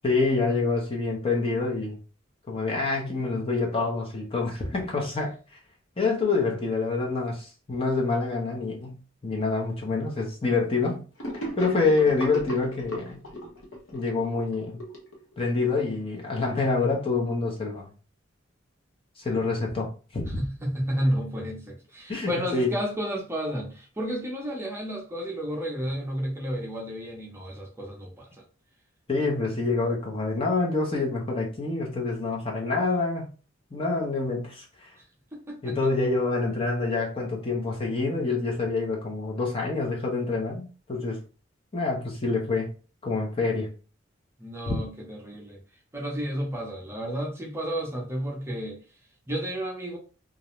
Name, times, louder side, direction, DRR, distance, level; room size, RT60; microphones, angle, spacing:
voice 1, 0.0-2.0 2.5-5.6 6.0-11.0 11.6-13.2 13.9-14.8 15.4-17.9 19.2-20.4 22.1-22.7 29.1-33.2 33.7-35.0 35.6-41.2 41.7-42.7 43.0-43.7 44.7-44.8, left 3 dB, 30° left, 0.6 m, -27 dB
Gurgling / Sink (filling or washing), 11.2-15.7, equal, 75° left, 0.9 m, -37 dB
voice 2, 20.4-28.3 35.3-35.8 44.4-45.6 45.9-48.8 49.3-50.0, equal, 15° right, 0.6 m, -31 dB
2.4 x 2.1 x 2.9 m
head